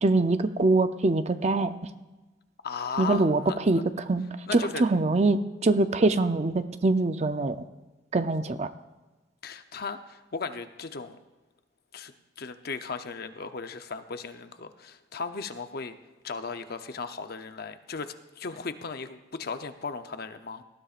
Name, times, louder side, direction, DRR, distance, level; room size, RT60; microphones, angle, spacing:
voice 1, 0.0-1.7 3.0-4.3 4.5-7.6 8.1-8.7, right 2 dB, 35° right, 10 dB, 0.6 m, -24 dB
voice 2, 2.6-3.8 4.5-4.9 9.4-11.2 11.9-16.0 16.2-20.6, left 4 dB, 55° left, 9 dB, 0.7 m, -36 dB
19.0 x 13.0 x 2.5 m, 1.2 s
head